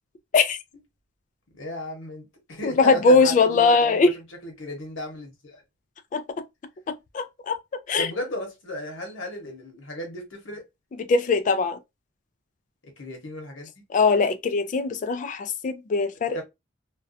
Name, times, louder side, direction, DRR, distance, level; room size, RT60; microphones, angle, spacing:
voice 1, 1.5-4.1 4.4-5.6 8.0-10.6 12.8-13.7 16.3-16.4, left 1 dB, 80° left, 0.9 m, -35 dB
voice 2, 2.6-4.1 6.1-6.2 6.9-7.6 7.9-8.1 11.1-11.8 13.9-16.4, left 4 dB, 40° left, 0.3 m, -21 dB
2.3 x 2.2 x 2.5 m
head